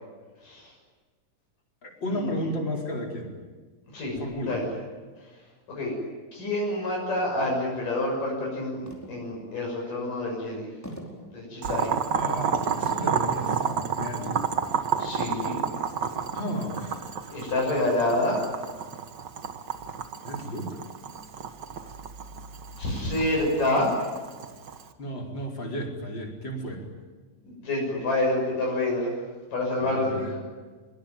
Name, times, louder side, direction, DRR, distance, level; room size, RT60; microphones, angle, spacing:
voice 1, 1.8-3.3 4.2-4.6 12.1-14.6 16.3-17.1 20.2-20.8 25.0-26.8 29.8-30.3, equal, 30° left, 0 dB, 5.1 m, -33 dB
voice 2, 3.9-4.7 5.7-5.9 6.3-8.8 9.1-10.7 11.3-11.9 15.0-15.6 17.3-18.4 22.8-24.0 27.4-29.1 29.5-30.4, left 1 dB, 65° left, -1 dB, 8.1 m, -27 dB
sound 1, 8.8-9.5 10.0-10.1 10.8-11.4 12.1-12.6, equal, 5° left, 4.6 m, -42 dB
Boiling, 11.6-24.9, right 6 dB, 55° right, 1.2 m, -31 dB
25.0 x 24.0 x 9.2 m, 1.4 s
omnidirectional pair, 4.0 m